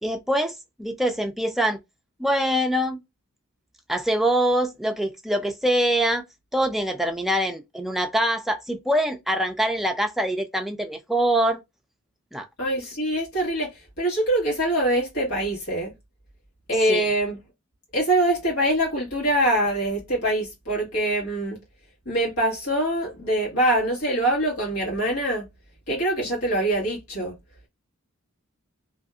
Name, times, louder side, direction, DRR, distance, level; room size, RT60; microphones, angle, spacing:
voice 1, 0.0-1.8 2.2-3.0 3.9-6.2 6.5-11.6 12.3-12.5 16.9-17.0, right 1 dB, ahead, 0.3 m, -24 dB
voice 2, 12.6-13.7 14.0-15.9 16.7-17.4 17.9-21.6 22.0-25.5 25.9-27.3, right 1 dB, 85° left, 1.5 m, -24 dB
2.7 x 2.5 x 2.2 m
head